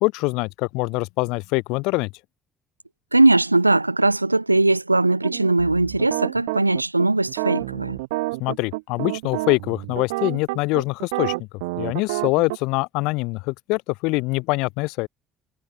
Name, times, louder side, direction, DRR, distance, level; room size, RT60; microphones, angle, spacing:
voice 1, 0.0-2.1 8.4-11.5 11.8-15.1, left 24 dB, 60° left, 2.4 m, -24 dB
voice 2, 3.1-8.0, right 2 dB, 85° right, 0.5 m, -19 dB
sound 1, 5.2-12.6, right 23 dB, 65° right, 7.8 m, -29 dB
figure-of-eight pair, 50°, 0 cm